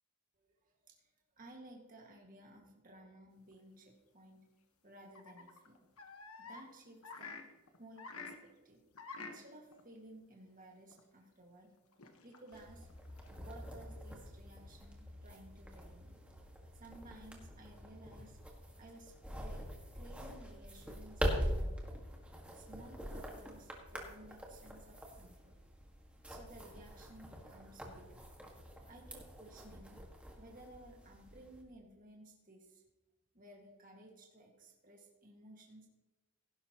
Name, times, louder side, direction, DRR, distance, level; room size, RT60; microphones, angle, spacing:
voice 1, 0.4-4.5 4.8-5.9 6.4-7.4 7.8-8.8 9.2-11.7 12.2-16.2 16.7-18.4 18.8-19.7 19.9-22.0 22.5-25.6 26.3-28.2 28.9-30.0 30.4-32.8 33.3-35.9, right 1 dB, 40° right, 0 dB, 1.9 m, -57 dB
sound 1, 3.5-3.6 5.2-6.6 7.0-8.4 9.0-9.4 9.7-9.8 10.9-11.0 11.9-13.4, left 4 dB, 75° left, 1.3 m, -49 dB
sound 2, 12.5-31.6, equal, 5° right, 1.7 m, -44 dB
17.0 x 10.5 x 3.0 m, 1.1 s
head